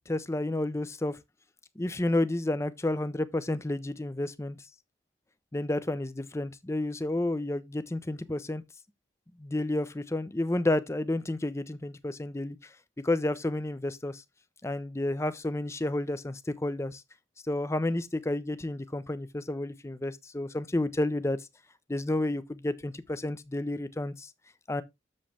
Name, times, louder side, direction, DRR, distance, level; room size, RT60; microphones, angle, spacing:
voice 1, 0.1-1.2 1.8-4.6 5.5-8.6 9.4-12.7 13.0-14.2 14.6-17.0 17.5-21.4 21.9-24.3 24.7-24.8, left 1 dB, 15° left, 0.5 m, -31 dB
7.6 x 7.0 x 3.3 m
head